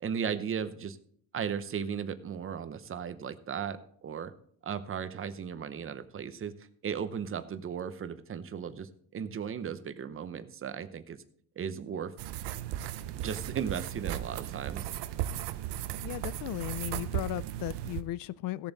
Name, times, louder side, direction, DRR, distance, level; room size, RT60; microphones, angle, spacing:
voice 1, 0.0-1.0 1.3-4.3 4.6-11.2 11.6-12.1 13.1-14.9, right 7 dB, 35° right, 0.8 m, -36 dB
sound 1, 12.2-18.0, right 12 dB, 85° right, 0.7 m, -36 dB
voice 2, 16.0-18.7, left 15 dB, 55° left, 0.4 m, -36 dB
16.5 x 7.1 x 4.0 m
cardioid pair, 140°, 40 cm